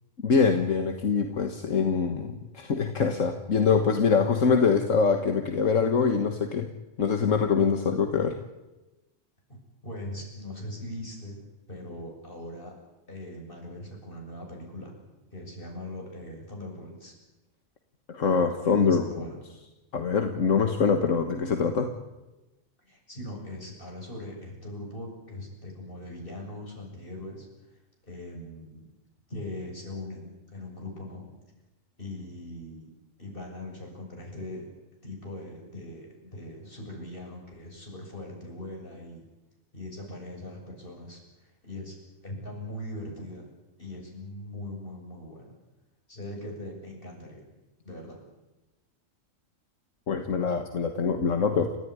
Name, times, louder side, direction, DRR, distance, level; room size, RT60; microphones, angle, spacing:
voice 1, 0.2-6.7 7.0-8.4 18.1-19.1 19.9-21.9 50.1-51.8, left 5 dB, 75° left, 5 dB, 1.9 m, -24 dB
voice 2, 9.8-11.4 11.7-12.7 13.1-15.0 15.3-17.1 18.6-19.4 22.8-27.8 28.0-28.9 29.3-31.3 32.0-32.9 33.2-34.7 35.0-39.2 39.7-41.9 42.2-43.4 43.8-45.5 46.1-47.4 47.8-48.2, left 1 dB, 40° left, 0 dB, 7.5 m, -40 dB
30.0 x 14.5 x 9.7 m, 1.0 s
omnidirectional pair, 1.3 m